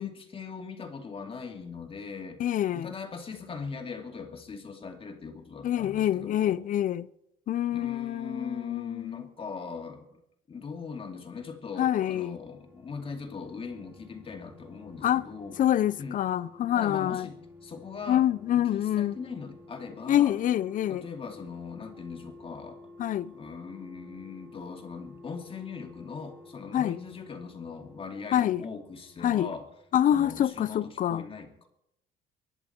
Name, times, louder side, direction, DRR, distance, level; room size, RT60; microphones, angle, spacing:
voice 1, 0.0-2.4 2.7-6.6 7.7-10.2 10.5-15.6 16.0-16.2 16.7-17.4 17.6-18.2 18.5-20.4 20.9-22.8 23.3-29.7 30.1-31.7, left 5 dB, 35° left, 2.7 m, -40 dB
voice 2, 2.4-2.9 5.6-7.1 7.5-9.3 11.8-12.4 15.0-15.3 15.6-17.3 18.1-19.1 20.1-21.0 23.0-23.3 26.7-27.0 28.3-28.6 29.2-29.5 29.9-31.2, left 11 dB, 50° left, 0.6 m, -26 dB
sound 1, 11.9-30.1 30.4-30.5, left 2 dB, 15° right, 2.3 m, -52 dB
23.5 x 11.0 x 4.5 m
cardioid pair, 110°, 17 cm